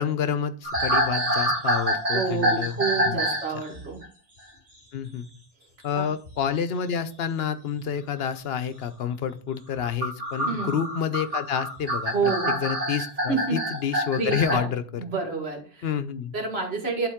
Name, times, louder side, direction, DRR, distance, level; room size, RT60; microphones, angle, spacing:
voice 1, 0.0-2.7 3.0-3.2 3.5-3.6 4.9-5.3 5.8-15.0 15.8-16.3, left 7 dB, 75° left, 11 dB, 0.9 m, -29 dB
sound 1, 0.6-3.5 3.7-4.0 6.2-6.5 7.8-7.9 9.8-14.5, equal, 40° right, 2.4 m, -26 dB
voice 2, 2.1-4.0 6.0-6.1 10.4-10.8 12.1-12.5 13.3-13.6 14.2-14.7 15.0-15.9 16.3-17.1, right 4 dB, 85° right, 1 dB, 2.1 m, -28 dB
11.0 x 3.8 x 3.6 m, 0.40 s
omnidirectional pair, 1.0 m